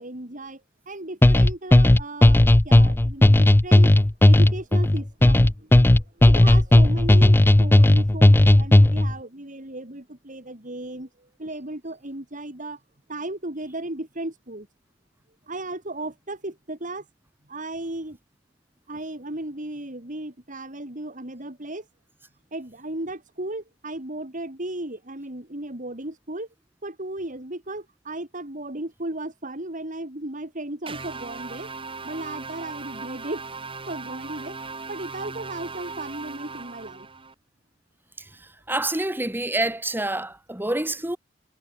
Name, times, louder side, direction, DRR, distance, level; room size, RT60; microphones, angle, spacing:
voice 1, 0.0-12.8 13.1-14.7 15.5-17.1 17.5-18.2 18.9-21.9 22.5-26.5 26.8-31.7 32.0-33.4 33.9-34.6 34.9-37.1, right 1 dB, 45° right, 3.9 m, -35 dB
sound 1, 1.2-9.1, left 1 dB, 10° left, 0.4 m, -15 dB
sound 2, 30.9-37.3, right 4 dB, 30° right, 3.9 m, -38 dB
voice 2, 38.2-41.2, right 2 dB, 10° right, 1.9 m, -27 dB
head